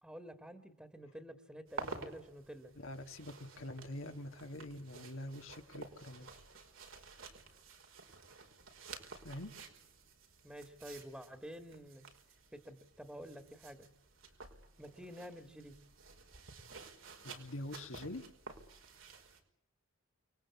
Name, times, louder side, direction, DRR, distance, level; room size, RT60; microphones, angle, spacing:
voice 1, 0.0-2.7 10.4-12.0 12.5-13.9 14.8-15.8, equal, 5° right, 9 dB, 1.9 m, -50 dB
sound 1, 1.7-19.4, right 3 dB, 85° right, 5.3 m, -52 dB
voice 2, 2.8-6.3 9.2-9.5 17.2-18.3, left 1 dB, 85° left, 4 dB, 2.5 m, -45 dB
29.0 x 20.5 x 8.6 m, 0.75 s
head